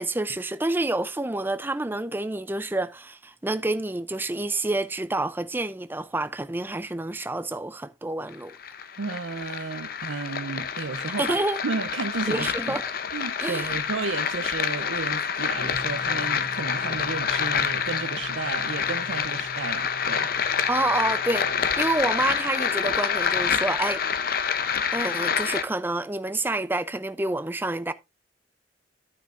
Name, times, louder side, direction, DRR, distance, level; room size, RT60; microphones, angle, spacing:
voice 1, 0.0-8.6 11.2-11.6 12.3-12.8 13.4-13.7 20.7-24.0 24.9-27.9, right 2 dB, 10° right, 0.5 m, -28 dB
sound 1, 8.3-25.6, left 7 dB, 50° left, 0.7 m, -27 dB
voice 2, 9.0-12.8 13.1-20.3, right 4 dB, 90° right, 0.6 m, -33 dB
sound 2, 15.5-22.4, left 2 dB, 75° left, 3.3 m, -44 dB
11.0 x 9.3 x 2.5 m
head